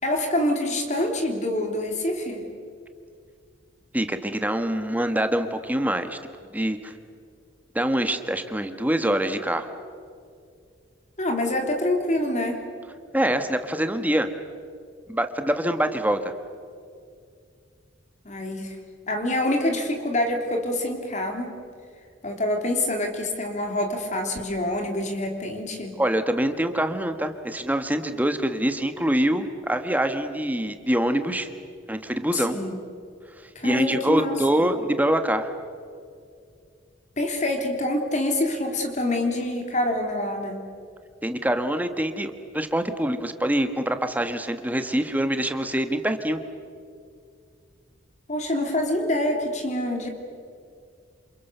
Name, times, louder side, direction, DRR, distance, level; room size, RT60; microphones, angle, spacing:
voice 1, 0.0-2.4 11.2-12.6 18.2-18.8 19.1-21.6 22.2-25.9 32.3-32.8 33.5-34.4 37.2-40.6 48.3-50.1, left 1 dB, 40° left, 3 dB, 3.0 m, -26 dB
voice 2, 3.9-6.2 6.5-6.9 7.7-9.7 13.1-14.3 15.1-16.3 26.0-31.5 31.9-32.6 33.6-35.5 41.2-46.4, right 1 dB, 10° right, 8 dB, 1.3 m, -25 dB
28.5 x 28.0 x 6.8 m, 2.3 s
head